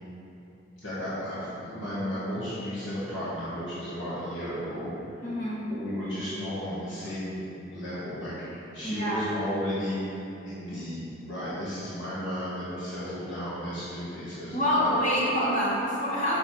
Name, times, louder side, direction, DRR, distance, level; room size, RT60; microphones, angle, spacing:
voice 1, 0.8-4.9 5.7-10.1 10.4-11.0 11.3-15.0, equal, 75° left, -11 dB, 1.5 m, -34 dB
voice 2, 5.2-5.6 8.8-9.2 14.5-16.4, equal, 40° left, -7 dB, 1.6 m, -26 dB
6.6 x 5.5 x 4.3 m, 2.9 s
head